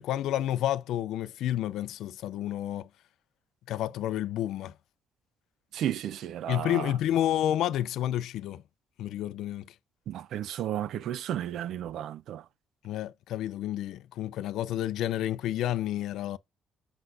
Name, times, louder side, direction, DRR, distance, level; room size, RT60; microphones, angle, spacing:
voice 1, 0.0-2.9 3.7-4.7 6.5-8.6 9.0-9.7 12.8-16.4, left 12 dB, 85° left, 0.4 m, -30 dB
voice 2, 5.7-6.8 10.1-12.4, right 11 dB, 75° right, 0.4 m, -33 dB
6.2 x 5.9 x 2.6 m
cardioid pair, 90°, 0 cm